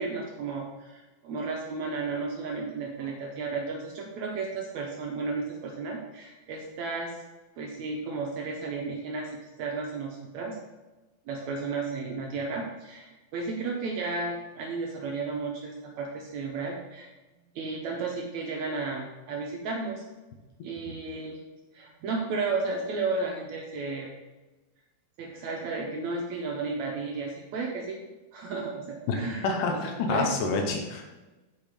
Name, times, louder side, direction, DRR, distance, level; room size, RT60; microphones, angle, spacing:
voice 1, 0.0-7.1 7.6-9.3 9.6-10.6 11.3-17.1 17.6-20.0 20.6-21.4 21.7-24.1 25.2-28.0 28.3-29.5 29.7-29.8 30.1-30.3, right 4 dB, 70° right, 0 dB, 1.8 m, -33 dB
voice 2, 29.4-31.0, left 3 dB, 70° left, 2 dB, 2.6 m, -27 dB
8.7 x 4.7 x 5.1 m, 1.1 s
omnidirectional pair, 4.2 m